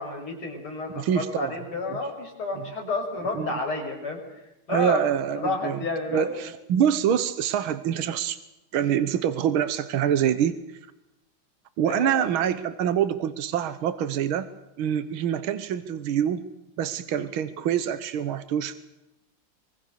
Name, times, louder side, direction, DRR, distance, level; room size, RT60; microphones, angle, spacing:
voice 1, 0.0-4.2 4.7-5.0 5.3-6.3 11.9-12.3 17.2-17.3, left 3 dB, 90° left, 2 dB, 7.0 m, -30 dB
voice 2, 0.9-1.6 3.4-3.6 4.7-5.8 6.1-8.4 8.7-10.5 11.8-14.5 14.8-16.5 16.8-18.8, right 9 dB, 80° right, 12 dB, 1.9 m, -25 dB
25.5 x 23.0 x 6.8 m, 0.91 s
omnidirectional pair, 2.3 m